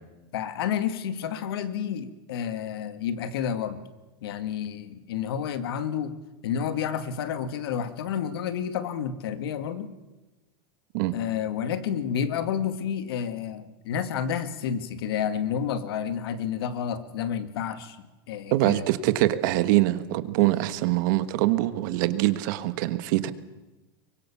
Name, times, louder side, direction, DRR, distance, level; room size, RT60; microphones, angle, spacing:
voice 1, 0.3-3.8 4.2-6.1 6.4-9.9 11.1-18.8, left 8 dB, 80° left, 11 dB, 2.0 m, -30 dB
voice 2, 18.5-23.3, right 16 dB, 55° right, 12 dB, 1.3 m, -24 dB
23.5 x 21.0 x 7.2 m, 1.1 s
supercardioid pair, 165°, 13 cm